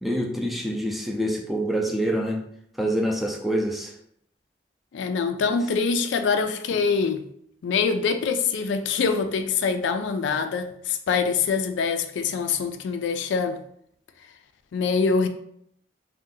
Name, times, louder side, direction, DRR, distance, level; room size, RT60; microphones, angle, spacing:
voice 1, 0.0-2.4 2.8-3.9, equal, ahead, 0.3 m, -26 dB
voice 2, 4.9-7.3 7.6-13.6 14.7-15.3, left 5 dB, 85° left, 0.3 m, -24 dB
2.6 x 2.2 x 3.7 m
head